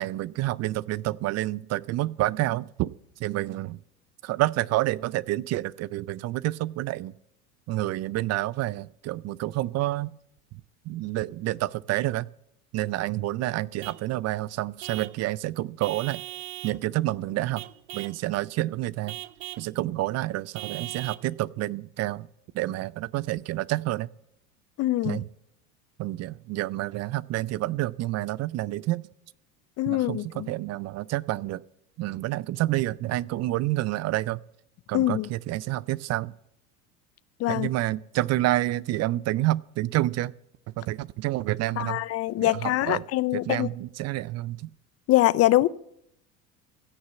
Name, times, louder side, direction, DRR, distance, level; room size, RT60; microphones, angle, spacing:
voice 1, 0.0-2.9 3.2-3.8 4.2-7.1 7.7-10.1 10.9-12.3 12.7-16.2 16.6-17.6 17.9-19.2 19.6-22.3 22.5-24.1 25.0-25.3 26.0-29.1 29.9-31.6 32.0-34.4 34.9-36.3 37.5-40.3 40.8-42.0 42.4-43.0 43.3-44.7, right 16 dB, 40° right, 22 dB, 0.4 m, -28 dB
Vehicle horn car horn honking / Truck, 13.8-14.1 14.8-15.2 15.8-16.8 17.6-18.2 19.1-19.7 20.6-21.3, right 17 dB, 80° right, 0.7 m, -39 dB
voice 2, 24.8-25.2 29.8-30.5 34.9-35.3 37.4-37.7 41.8-43.7 45.1-45.7, left 16 dB, 40° left, 20 dB, 0.5 m, -23 dB
16.0 x 6.6 x 8.1 m, 0.77 s
hypercardioid pair, 85°, 42 cm